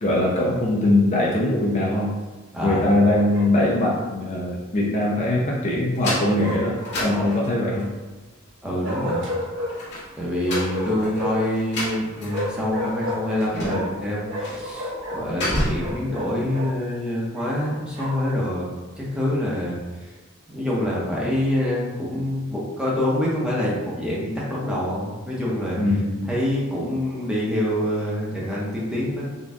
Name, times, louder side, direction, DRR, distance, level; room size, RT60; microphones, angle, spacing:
voice 1, 0.0-2.1 2.6-7.9 25.8-26.2, left 1 dB, 35° left, -3 dB, 0.5 m, -21 dB
voice 2, 2.5-2.9 8.6-9.3 10.1-18.7 19.0-20.1 20.5-25.8 26.3-29.2, left 1 dB, 5° right, -6 dB, 0.8 m, -26 dB
Bark, 3.3-3.9 6.4-7.5 8.8-9.7 10.4-11.5 12.3-14.0 14.3-16.7 17.3-18.3, left 1 dB, 60° right, 1.0 m, -32 dB
sound 1, 5.9-7.9 9.7-12.6 12.9-13.0 13.4-14.0 14.4-14.7 15.0-16.0, left 1 dB, 55° left, 1.4 m, -30 dB
4.2 x 2.3 x 3.5 m, 1.2 s
head